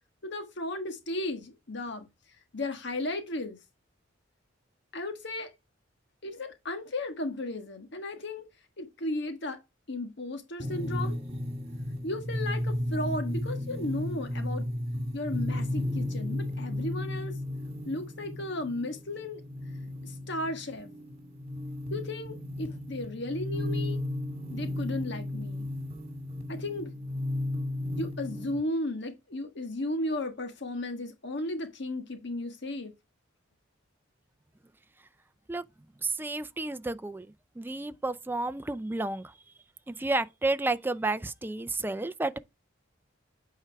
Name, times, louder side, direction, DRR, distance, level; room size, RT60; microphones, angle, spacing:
voice 1, 0.2-2.1 2.5-3.6 4.9-5.5 6.2-8.4 8.8-9.6 9.9-11.2 12.0-14.7 15.1-17.3 17.8-19.4 20.0-20.9 21.9-24.0 24.5-25.7 26.5-26.9 28.0-32.9, left 1 dB, 60° left, 1.4 m, -35 dB
sound 1, 10.6-28.6, left 1 dB, 30° right, 2.0 m, -34 dB
voice 2, 36.0-37.3 37.6-39.3 39.9-42.4, right 2 dB, 10° right, 0.4 m, -31 dB
8.9 x 4.7 x 3.4 m
head